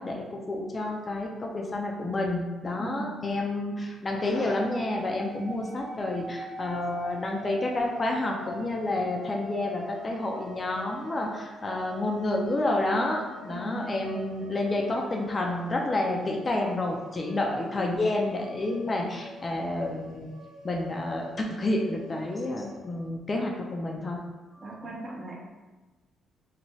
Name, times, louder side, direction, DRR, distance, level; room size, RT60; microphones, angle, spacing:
voice 1, 0.0-20.3 20.6-24.2 24.5-24.7, left 2 dB, 30° left, 0 dB, 0.4 m, -29 dB
voice 2, 2.8-3.3 5.4-5.5 13.5-14.0 24.6-25.4, right 2 dB, 30° right, -1 dB, 0.6 m, -38 dB
sound 1, 4.1-22.8, right 2 dB, 80° right, 0.6 m, -45 dB
3.0 x 2.1 x 2.7 m, 1.2 s
cardioid pair, 90°, 0 cm